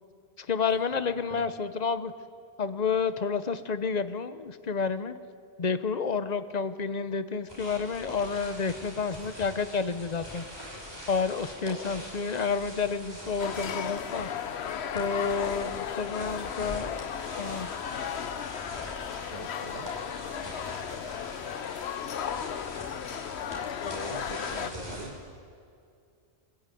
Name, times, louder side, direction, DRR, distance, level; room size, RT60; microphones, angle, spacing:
voice 1, 0.4-2.1 2.6-5.1 5.6-10.4 11.1-14.3 14.9-17.1 17.4-17.7, left 5 dB, 40° left, 12 dB, 0.9 m, -30 dB
sound 1, 7.5-25.1, equal, 20° right, 5.8 m, -43 dB
sound 2, 13.4-24.7, left 8 dB, 80° left, 1.0 m, -35 dB
voice 2, 19.3-19.9 23.8-25.2, right 3 dB, 40° right, 4 dB, 1.4 m, -42 dB
24.5 x 15.5 x 9.3 m, 2.4 s
omnidirectional pair, 1.1 m